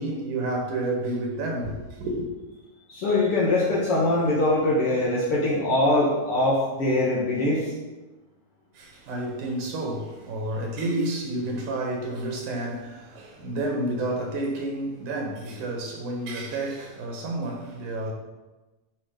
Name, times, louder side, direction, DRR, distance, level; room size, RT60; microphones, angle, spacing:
voice 1, 0.0-2.3 8.7-18.1, right 1 dB, 80° right, 3.1 m, -30 dB
voice 2, 2.9-7.7, left 2 dB, 55° left, 2.3 m, -22 dB
9.7 x 5.3 x 5.2 m
omnidirectional pair, 3.5 m